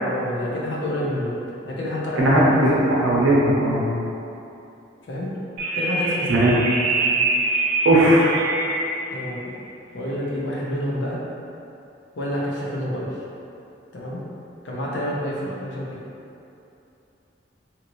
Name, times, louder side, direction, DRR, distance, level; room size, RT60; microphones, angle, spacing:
voice 1, 0.1-1.3 1.6-2.6 5.1-5.3 5.7-6.5 9.1-9.5 9.9-11.2 12.2-13.1 13.9-14.2 14.6-15.9, equal, 65° left, -5 dB, 0.6 m, -28 dB
voice 2, 2.2-3.8 6.3-6.7 7.8-8.3, right 1 dB, 80° right, -6 dB, 0.7 m, -17 dB
sound 1, 5.6-9.1, right 2 dB, 55° right, 0.3 m, -24 dB
2.9 x 2.6 x 2.9 m, 2.8 s
head